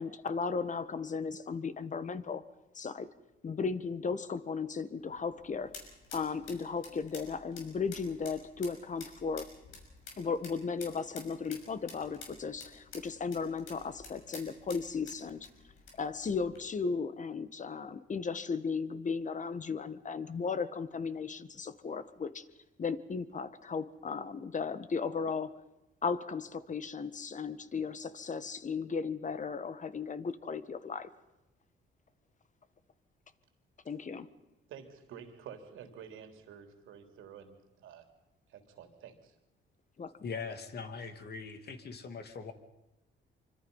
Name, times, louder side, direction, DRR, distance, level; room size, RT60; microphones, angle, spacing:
voice 1, 0.0-2.4 2.7-3.1 3.4-5.7 6.1-9.5 10.2-15.5 15.9-22.4 22.8-25.5 26.0-31.1 33.8-34.3 40.0-40.1, left 5 dB, 40° left, 13 dB, 1.6 m, -36 dB
sound 1, 5.0-16.6, left 4 dB, 90° left, 6.2 m, -52 dB
voice 2, 34.7-38.1 38.5-39.3, right 8 dB, 85° right, 6 dB, 3.5 m, -50 dB
voice 3, 40.2-42.5, left 5 dB, 55° left, 8 dB, 2.7 m, -41 dB
25.5 x 25.0 x 5.6 m, 0.97 s
cardioid pair, 90°, 20 cm